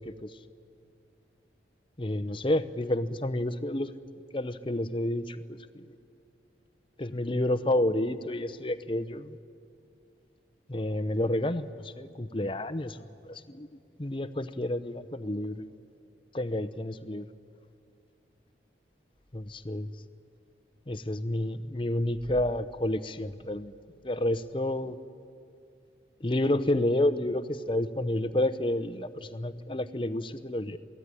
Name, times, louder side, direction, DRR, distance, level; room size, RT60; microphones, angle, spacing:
voice 1, 2.0-3.9 4.3-5.8 7.0-9.4 10.7-13.7 14.0-15.7 16.3-17.2 19.3-19.9 20.9-23.7 24.0-25.0 26.2-30.8, left 1 dB, 30° left, 12 dB, 0.8 m, -30 dB
27.5 x 18.0 x 9.9 m, 2.4 s
head